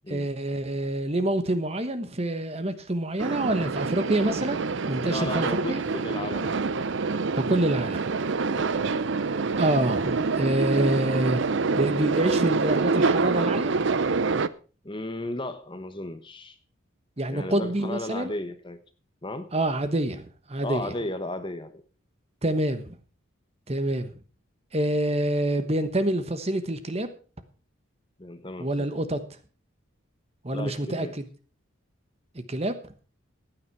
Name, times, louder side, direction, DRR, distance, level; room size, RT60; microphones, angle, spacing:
voice 1, 0.1-4.6 4.9-5.8 7.4-8.0 9.6-11.4 11.8-13.7 17.2-18.3 19.5-20.9 22.4-22.9 23.7-24.1 24.7-27.1 28.6-29.2 30.4-31.1 32.3-32.7, right 1 dB, 30° right, 10 dB, 1.1 m, -26 dB
sound 1, 3.2-14.5, right 4 dB, 60° right, 0.6 m, -26 dB
voice 2, 5.0-6.6 8.4-8.9 14.8-16.6 17.3-18.8 19.2-19.5 20.6-21.7 28.2-28.9 30.5-31.1, left 2 dB, 25° left, 10 dB, 1.0 m, -35 dB
15.0 x 9.4 x 4.6 m, 0.37 s
head